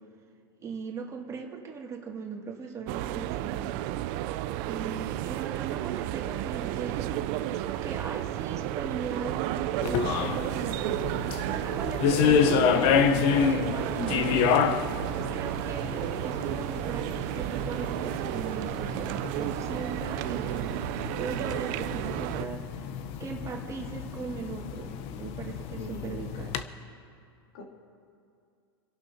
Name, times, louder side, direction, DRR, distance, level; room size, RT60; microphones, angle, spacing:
voice 1, 0.6-3.7 4.6-11.1 11.5-12.9 13.3-14.0 15.1-22.7 23.2-26.6, right 5 dB, 25° right, 0 dB, 2.4 m, -39 dB
sound 1, 2.9-22.5, right 14 dB, 50° right, 0.6 m, -32 dB
sound 2, 9.8-26.6, left 7 dB, 50° left, 0.9 m, -29 dB
voice 2, 14.0-14.3 25.8-26.2 27.5-27.6, left 1 dB, 65° left, -1 dB, 3.4 m, -38 dB
29.5 x 11.5 x 2.9 m, 2.4 s
hypercardioid pair, 120°, 13 cm